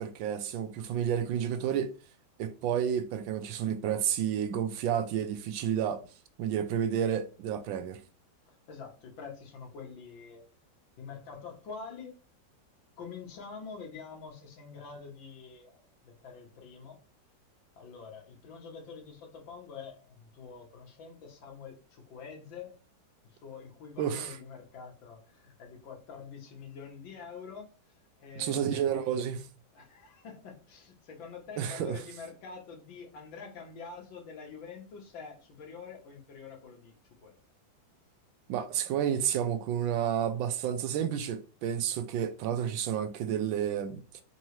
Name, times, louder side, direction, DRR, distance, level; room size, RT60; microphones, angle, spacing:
voice 1, 0.0-1.9 2.4-6.0 6.4-8.0 24.0-24.4 28.4-29.4 31.6-32.0 38.5-44.2, right 9 dB, 85° right, 1.3 m, -30 dB
voice 2, 8.4-10.4 11.0-12.1 13.0-17.0 17.8-22.8 23.2-29.2 29.7-37.4, left 5 dB, 80° left, 1.8 m, -46 dB
4.6 x 2.8 x 3.1 m
omnidirectional pair, 2.1 m